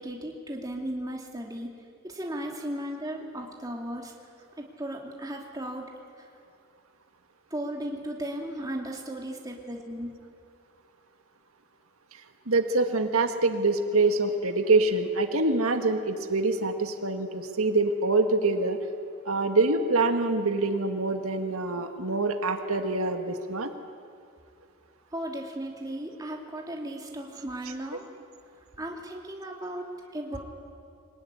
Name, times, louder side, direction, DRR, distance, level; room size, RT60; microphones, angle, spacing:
voice 1, 0.0-1.7 2.0-4.1 4.6-5.9 6.2-6.3 7.5-10.1 25.1-28.0 28.8-29.8 30.1-30.4, right 1 dB, 15° right, 0 dB, 2.7 m, -36 dB
voice 2, 12.5-18.8 19.3-23.7, right 3 dB, 90° right, 5 dB, 1.8 m, -25 dB
24.5 x 19.5 x 9.9 m, 2.4 s
head